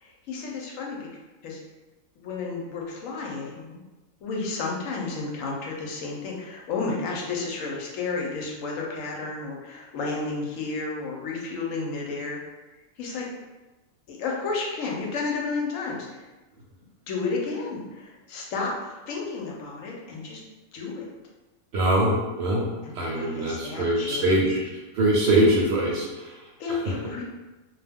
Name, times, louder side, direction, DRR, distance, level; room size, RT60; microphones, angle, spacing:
voice 1, 0.0-1.0 1.4-1.6 2.2-3.8 4.2-12.4 13.0-13.3 14.1-16.2 17.1-18.7 19.1-20.4 20.7-21.1 22.8-24.3 24.6-24.7 26.6-27.2, left 4 dB, 75° left, -2 dB, 1.0 m, -32 dB
voice 2, 21.7-22.7 22.9-24.6 24.9-26.4, right 1 dB, 65° right, -4 dB, 0.7 m, -23 dB
2.3 x 2.1 x 3.4 m, 1.1 s
omnidirectional pair, 1.4 m